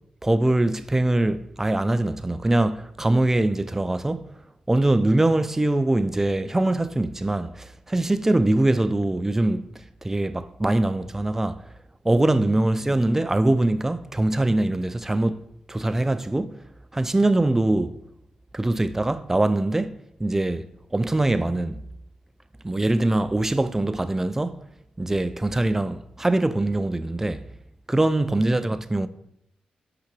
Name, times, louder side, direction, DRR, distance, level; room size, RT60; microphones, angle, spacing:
voice 1, 0.2-4.3 4.7-9.7 10.0-11.6 12.0-15.4 15.7-16.6 16.9-18.0 18.5-21.8 22.6-24.6 25.0-27.5 27.9-29.1, right 2 dB, 15° right, 0.4 m, -23 dB
6.0 x 5.8 x 6.0 m
cardioid pair, 95°, 3 cm